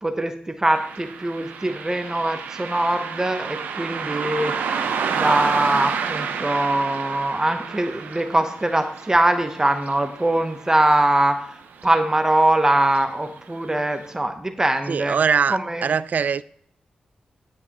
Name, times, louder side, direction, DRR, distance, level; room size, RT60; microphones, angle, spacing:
voice 1, 0.0-4.6 5.1-15.2 15.5-15.9, right 1 dB, 20° right, 0.9 m, -22 dB
Car passing by, 0.7-11.5 11.8-11.9 12.8-13.0 13.5-13.6 14.1-14.2, right 6 dB, 85° right, 0.7 m, -30 dB
voice 2, 14.9-16.4, right 6 dB, 60° right, 0.3 m, -22 dB
13.5 x 4.6 x 3.0 m
cardioid pair, 55°, 3 cm